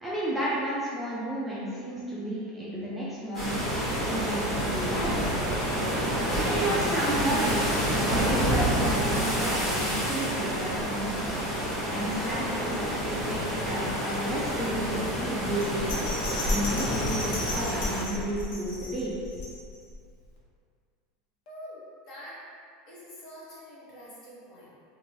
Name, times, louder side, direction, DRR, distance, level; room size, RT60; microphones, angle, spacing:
voice 1, 0.0-3.6 4.0-5.3 6.4-19.2, right 1 dB, 5° right, -9 dB, 0.4 m, -32 dB
sound 1, 3.3-18.0, equal, 15° left, 1.2 m, -28 dB
Bell, 15.6-19.9 20.4-20.5, left 1 dB, 80° left, 0.7 m, -34 dB
voice 2, 21.5-22.4 22.9-24.8, equal, 40° left, -7 dB, 0.9 m, -46 dB
2.9 x 2.5 x 3.0 m, 2.2 s
supercardioid pair, 170°, 0 cm